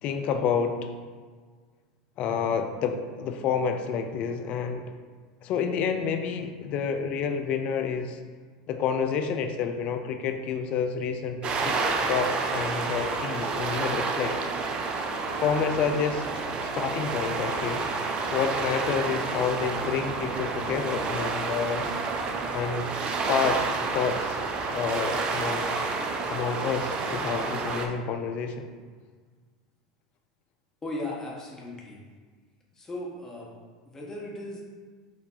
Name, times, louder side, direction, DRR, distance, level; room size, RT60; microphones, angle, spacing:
voice 1, 0.0-0.9 2.2-4.9 5.4-8.2 8.7-11.8 12.1-14.4 15.4-16.3 16.6-17.8 18.3-21.9 22.5-23.6 23.9-24.4 24.7-25.7 26.3-28.7, left 6 dB, 50° left, 6 dB, 0.5 m, -29 dB
sound 1, 11.4-27.9, right 4 dB, 40° right, 0.5 m, -29 dB
voice 2, 30.8-32.0 32.7-33.5 33.8-34.6, left 1 dB, 20° left, -3 dB, 1.2 m, -37 dB
4.9 x 2.6 x 3.9 m, 1.5 s
hypercardioid pair, 85°, 3 cm